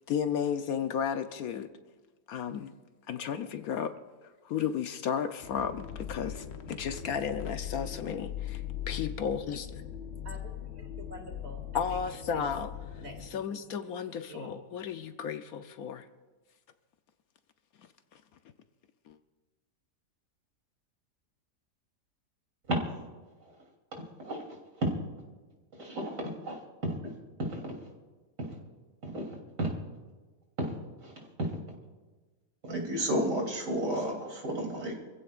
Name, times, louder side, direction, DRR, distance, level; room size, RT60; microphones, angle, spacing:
voice 1, 0.1-1.7 2.3-2.7 3.1-3.9 4.4-9.8 11.7-12.7 13.2-16.1 19.1-19.2, left 7 dB, 70° left, 9 dB, 1.1 m, -33 dB
sound 1, 5.4-13.3, left 10 dB, 50° left, 1.0 m, -40 dB
voice 2, 10.2-12.0 12.3-12.5 13.0-13.6 14.3-14.5, right 2 dB, 40° right, 2 dB, 2.8 m, -47 dB
voice 3, 25.8-26.6 27.0-27.1 27.4-27.6 29.1-29.3 29.6-29.7 30.6-30.7 31.0-31.1 31.4-31.5 32.6-35.0, right 1 dB, 90° right, 0 dB, 3.8 m, -31 dB
26.0 x 15.5 x 2.5 m, 1.3 s
omnidirectional pair, 1.7 m